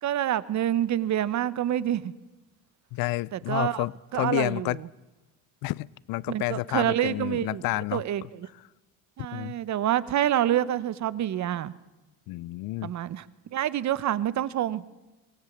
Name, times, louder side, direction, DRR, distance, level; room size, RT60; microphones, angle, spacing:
voice 1, 0.0-2.1 3.3-3.8 4.1-4.8 6.3-7.6 7.9-8.5 9.2-11.7 12.8-13.2 13.5-14.8, right 11 dB, 45° right, 18 dB, 1.0 m, -27 dB
voice 2, 2.9-4.8 5.6-8.3 9.3-9.6 12.3-12.9, left 19 dB, 60° left, 24 dB, 0.6 m, -30 dB
24.0 x 17.0 x 7.3 m, 1.1 s
supercardioid pair, 105°, 41 cm